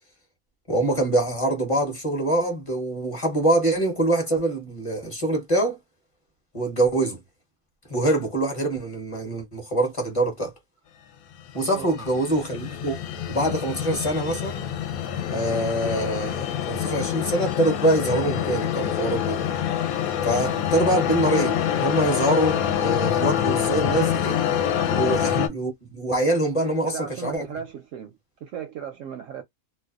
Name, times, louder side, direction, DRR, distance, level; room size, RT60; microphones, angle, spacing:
voice 1, 0.7-5.8 6.5-7.2 7.9-10.5 11.5-13.0 13.3-14.6 15.3-19.4 20.2-24.4 24.9-27.4, right 1 dB, 30° left, 0.7 m, -24 dB
sound 1, 11.4-25.5, left 9 dB, 70° left, 1.0 m, -26 dB
voice 2, 26.6-29.4, right 8 dB, 70° right, 0.8 m, -36 dB
2.5 x 2.1 x 2.4 m
omnidirectional pair, 1.6 m